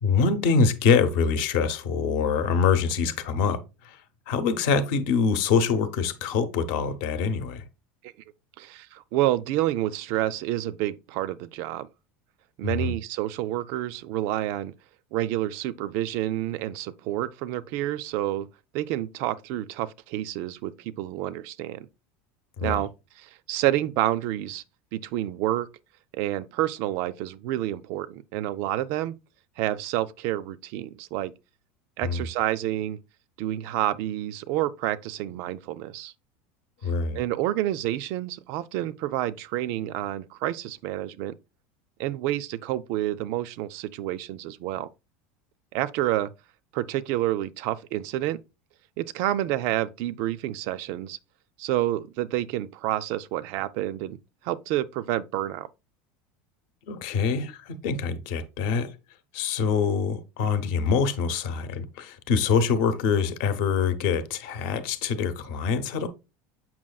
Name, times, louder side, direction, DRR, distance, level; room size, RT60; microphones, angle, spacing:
voice 1, 0.0-4.0 4.3-7.6 12.6-12.9 22.6-22.8 32.0-32.2 36.8-37.2 56.9-58.9 59.3-66.1, left 5 dB, 55° left, 0.9 m, -25 dB
voice 2, 8.6-11.9 12.6-14.7 15.1-18.5 18.7-21.9 22.6-22.9 23.2-24.6 24.9-25.7 26.1-29.2 29.6-31.3 32.0-33.0 33.4-36.1 37.2-41.3 42.0-44.9 45.7-46.3 46.7-48.4 49.0-51.2 51.6-54.2 54.4-55.7, right 14 dB, 45° right, 0.3 m, -29 dB
7.4 x 5.8 x 2.3 m
cardioid pair, 180°, 6 cm